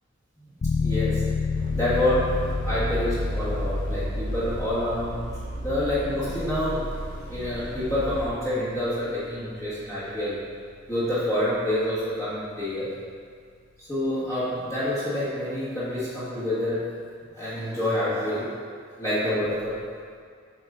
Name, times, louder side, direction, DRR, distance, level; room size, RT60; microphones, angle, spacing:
sound 1, 0.6-11.2, left 5 dB, 45° left, 0.4 m, -32 dB
voice 1, 0.8-1.2 1.7-2.4 2.6-6.9 7.3-10.4 10.9-12.9 13.8-16.9 17.3-18.5 19.0-19.8, left 1 dB, 15° left, -11 dB, 1.6 m, -27 dB
sound 2, 1.5-8.3, equal, 40° right, 0.7 m, -32 dB
7.5 x 4.1 x 3.9 m, 2.1 s
head